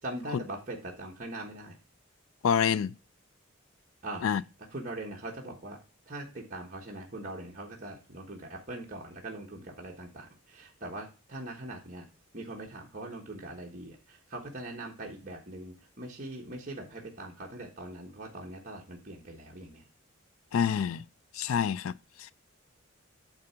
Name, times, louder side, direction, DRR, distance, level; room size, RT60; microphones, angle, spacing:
voice 1, 0.0-1.8 4.0-4.4 4.7-5.8 6.1-12.1 12.3-19.9, right 1 dB, 35° right, 1.2 m, -41 dB
voice 2, 2.4-2.9 4.2-4.4 20.5-21.0 21.3-21.9 22.2-22.3, left 7 dB, 75° left, 0.3 m, -27 dB
8.8 x 3.4 x 5.6 m
head